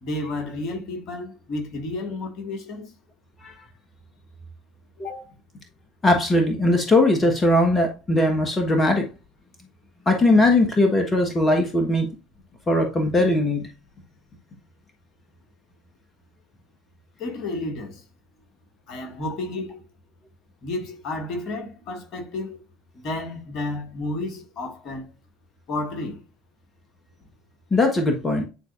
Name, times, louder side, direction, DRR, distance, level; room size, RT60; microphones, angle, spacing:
voice 1, 0.0-3.0 5.0-5.2 17.2-18.0 18.9-19.8 20.6-22.6 22.9-25.1 25.7-26.2, left 2 dB, 50° left, 1.9 m, -31 dB
voice 2, 6.0-9.1 10.0-12.1 12.7-13.7 27.7-28.4, left 1 dB, 25° left, 1.4 m, -20 dB
9.7 x 4.0 x 2.5 m
figure-of-eight pair, 60°, 0 cm